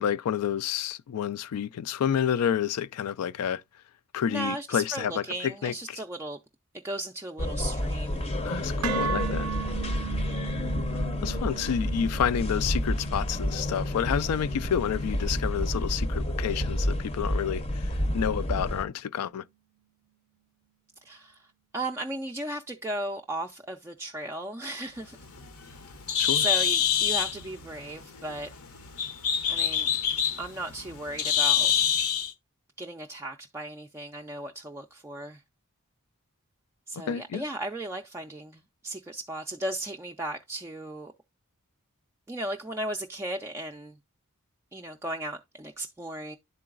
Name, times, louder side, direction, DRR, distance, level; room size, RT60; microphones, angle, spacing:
voice 1, 0.0-3.6 4.1-5.7 8.4-9.5 11.2-19.4 26.2-26.5 37.1-37.4, left 8 dB, 90° left, 0.3 m, -29 dB
voice 2, 4.2-6.4 6.8-8.2 10.3-10.5 21.0-25.2 26.3-28.5 29.5-30.0 30.4-31.7 32.8-35.4 36.9-41.1 42.3-44.0 44.7-46.4, right 1 dB, 10° right, 0.3 m, -36 dB
sound 1, 7.4-18.8, left 1 dB, 30° left, 0.6 m, -30 dB
sound 2, 8.8-16.9, right 8 dB, 75° right, 0.4 m, -38 dB
Bird, 25.0-32.3, left 8 dB, 65° left, 0.7 m, -26 dB
11.0 x 3.8 x 2.4 m
head